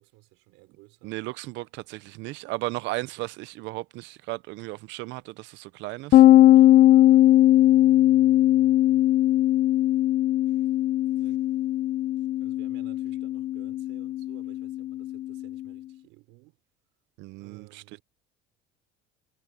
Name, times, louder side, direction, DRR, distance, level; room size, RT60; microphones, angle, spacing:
voice 1, 0.0-1.2 3.0-3.3 7.0-10.1 11.1-11.5 12.4-16.6 17.4-18.0, right 24 dB, 85° right, 5.7 m, -54 dB
voice 2, 1.0-6.2 17.2-18.0, right 20 dB, 65° right, 0.6 m, -35 dB
sound 1, 6.1-15.6, left 14 dB, 40° left, 0.4 m, -19 dB
cardioid pair, 135°, 20 cm